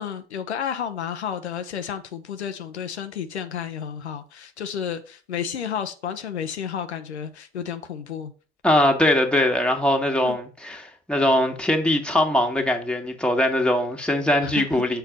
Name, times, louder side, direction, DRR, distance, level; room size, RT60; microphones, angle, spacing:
voice 1, 0.0-8.3 10.2-10.4 14.4-14.8, left 8 dB, 85° left, 0.6 m, -31 dB
voice 2, 8.6-15.0, left 1 dB, 5° left, 1.6 m, -21 dB
6.8 x 4.5 x 5.1 m
figure-of-eight pair, 60°, 33 cm